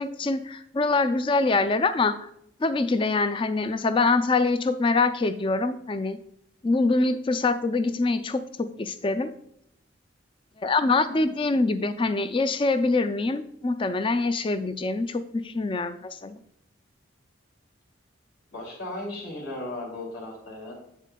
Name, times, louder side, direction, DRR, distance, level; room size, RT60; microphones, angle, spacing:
voice 1, 0.0-2.3 2.6-6.2 6.6-9.3 10.6-16.4, left 3 dB, 25° left, 11 dB, 0.3 m, -24 dB
voice 2, 18.5-20.7, left 1 dB, 65° left, -4 dB, 2.8 m, -36 dB
8.2 x 7.4 x 2.2 m, 0.77 s
head